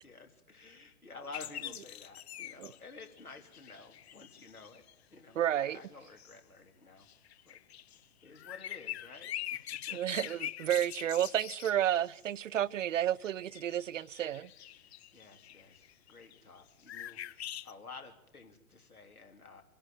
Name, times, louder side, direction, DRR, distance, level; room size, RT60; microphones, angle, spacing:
voice 1, 0.0-4.8 5.1-7.1 7.4-7.6 8.2-10.0 15.1-19.6, left 4 dB, 80° left, 3.3 m, -52 dB
sound 1, 1.3-4.9 5.7-6.4 7.0-12.2 13.2-16.6 16.9-17.7, left 12 dB, 45° left, 0.8 m, -44 dB
voice 2, 5.4-5.8 9.9-14.5, right 11 dB, 60° right, 0.6 m, -31 dB
26.0 x 11.0 x 9.0 m
figure-of-eight pair, 115°, 43 cm